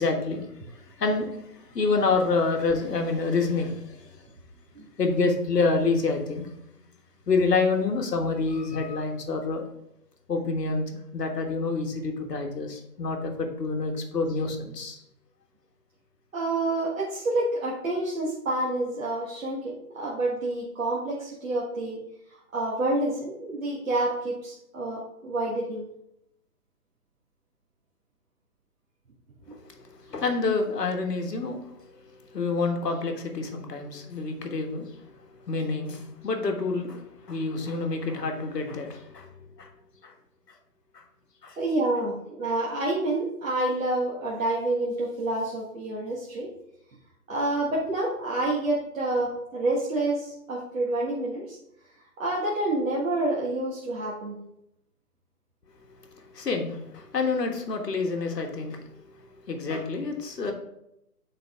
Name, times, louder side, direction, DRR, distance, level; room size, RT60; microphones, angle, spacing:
voice 1, 0.0-4.1 5.0-6.5 7.3-9.6 10.3-10.8 11.1-15.0 29.5-39.3 39.6-39.7 40.0-40.1 40.9-41.0 41.4-41.6 55.8-60.5, left 3 dB, 75° left, 3 dB, 1.6 m, -28 dB
voice 2, 16.3-22.0 22.5-25.9 29.5-29.6 41.6-46.5 47.3-51.6 52.2-54.4, right 2 dB, 55° right, -5 dB, 1.5 m, -28 dB
8.9 x 4.0 x 3.6 m, 0.80 s
hypercardioid pair, 170°, 48 cm